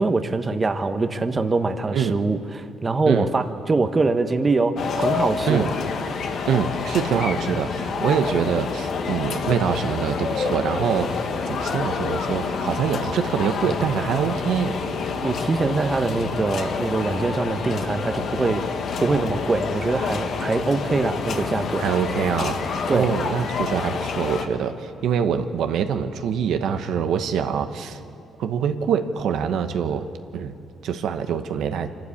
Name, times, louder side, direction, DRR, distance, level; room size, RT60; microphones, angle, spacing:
voice 1, 0.0-5.7 15.2-18.6 19.0-21.8 22.9-23.1, right 3 dB, 30° right, 8 dB, 1.1 m, -23 dB
sound 1, 4.8-24.5, left 5 dB, 65° left, 1.6 m, -28 dB
voice 2, 6.5-14.8 21.8-22.6 22.9-28.0 28.4-30.0 30.3-30.5 30.8-31.9, right 7 dB, 80° right, 7 dB, 1.0 m, -24 dB
25.5 x 12.0 x 8.6 m, 2.9 s
cardioid pair, 90°, 0 cm